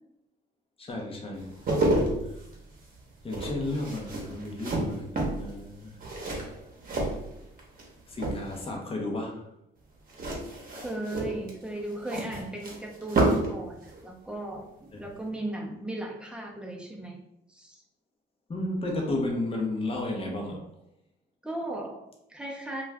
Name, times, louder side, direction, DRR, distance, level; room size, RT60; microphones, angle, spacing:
voice 1, 0.8-1.6 3.2-6.0 8.1-9.5 18.5-20.6, left 2 dB, 30° left, 0 dB, 0.7 m, -32 dB
sound 1, 1.4-7.8 8.1-8.8 10.1-13.6 13.8-14.0, right 2 dB, 45° right, 0.9 m, -30 dB
voice 2, 10.7-14.7 15.0-17.2 17.5-17.8 21.4-22.8, right 1 dB, 5° right, -1 dB, 0.6 m, -36 dB
2.4 x 2.3 x 3.3 m, 0.83 s
cardioid pair, 90°, 20 cm